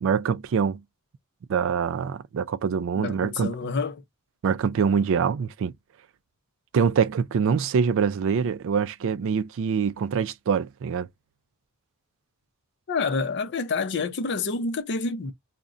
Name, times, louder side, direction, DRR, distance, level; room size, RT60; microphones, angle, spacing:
voice 1, 0.0-0.8 1.5-3.7 4.4-5.7 6.7-11.1, right 6 dB, 60° right, 0.3 m, -24 dB
voice 2, 3.0-4.0 12.9-15.3, left 4 dB, 50° left, 0.5 m, -28 dB
2.4 x 2.1 x 3.7 m
head